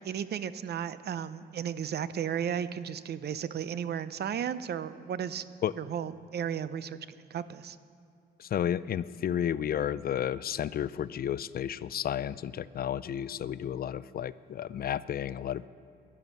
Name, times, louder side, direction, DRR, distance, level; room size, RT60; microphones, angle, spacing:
voice 1, 0.0-5.4 5.8-7.8, right 8 dB, 55° right, 14 dB, 0.7 m, -34 dB
voice 2, 8.4-15.7, left 10 dB, 50° left, 17 dB, 0.4 m, -32 dB
13.5 x 11.0 x 7.3 m, 2.6 s
cardioid pair, 90°, 20 cm